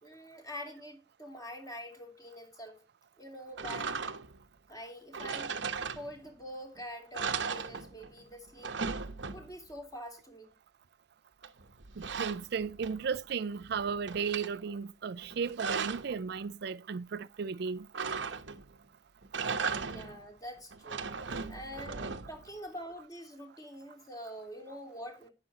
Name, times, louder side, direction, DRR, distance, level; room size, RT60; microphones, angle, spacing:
voice 1, 0.0-2.8 3.2-4.0 4.7-5.5 5.9-8.7 9.2-10.5 19.9-25.3, equal, 20° left, 3.1 m, -45 dB
sound 1, 3.6-4.4 5.1-6.4 6.8-6.9 7.1-8.2 8.5-9.7 11.4-13.2 13.6-14.5 15.2-16.2 17.9-18.7 19.2-20.2 20.7-22.5, right 5 dB, 85° right, 1.0 m, -37 dB
voice 2, 12.0-17.9, right 6 dB, 60° right, 0.4 m, -35 dB
11.0 x 9.4 x 2.9 m
head